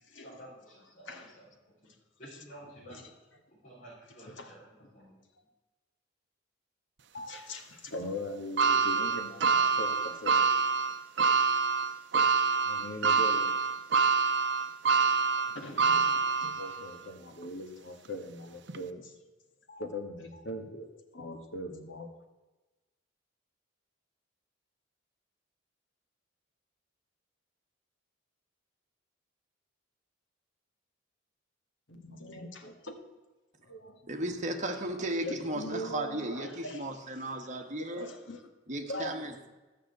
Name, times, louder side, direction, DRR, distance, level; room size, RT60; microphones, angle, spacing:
voice 1, 0.2-1.4 1.8-1.9 2.2-3.0 3.6-5.2, right 1 dB, 35° left, -9 dB, 4.8 m, -52 dB
voice 2, 2.6-3.0 4.3-4.5 7.1-10.4 12.5-13.6 15.5-19.1 19.7-22.1 31.9-33.0 33.7-33.9 35.0-38.5 38.9-39.2, left 1 dB, 75° left, 4 dB, 1.8 m, -41 dB
sound 1, 8.6-16.9 17.4-17.5 18.7-18.8, right 5 dB, 65° right, 0.7 m, -26 dB
voice 3, 34.1-38.1 38.7-39.5, right 1 dB, 40° right, 3 dB, 1.4 m, -35 dB
14.0 x 6.5 x 7.9 m, 1.2 s
head